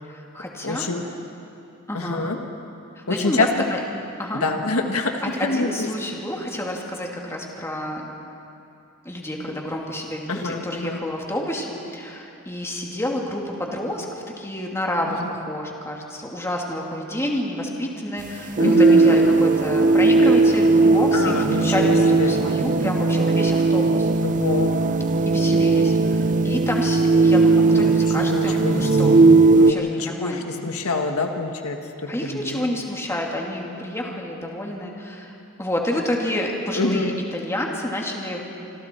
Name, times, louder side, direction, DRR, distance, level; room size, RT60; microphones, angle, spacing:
voice 1, 0.1-0.9 1.9-2.2 3.1-3.8 4.2-4.4 5.2-8.1 9.0-24.1 25.3-29.2 29.6-30.5 32.1-38.4, left 1 dB, 10° left, -1 dB, 2.6 m, -29 dB
voice 2, 0.6-1.0 1.9-2.4 3.1-3.5 4.3-5.9 10.3-11.0 15.1-15.2 18.6-19.4 21.1-22.3 24.2-24.7 27.7-28.9 29.4-32.7 36.8-37.2, left 3 dB, 75° left, 4 dB, 1.6 m, -26 dB
sound 1, 18.2-29.7, right 3 dB, 35° right, 0.6 m, -17 dB
27.0 x 26.0 x 4.6 m, 2.8 s
head